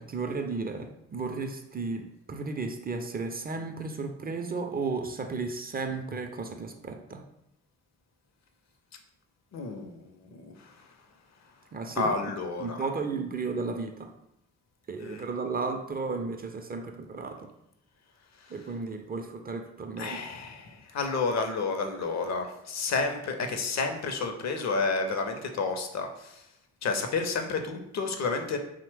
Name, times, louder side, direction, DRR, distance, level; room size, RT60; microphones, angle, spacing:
voice 1, 0.0-7.2 11.7-12.1 12.6-14.1 14.9-17.5 18.5-20.2, right 4 dB, 30° right, 5 dB, 0.4 m, -34 dB
voice 2, 9.5-10.7 12.0-12.8 15.0-15.2 20.0-26.4 26.8-28.6, left 4 dB, 55° left, 6 dB, 0.5 m, -31 dB
2.8 x 2.1 x 3.1 m, 0.80 s
supercardioid pair, 40°, 32 cm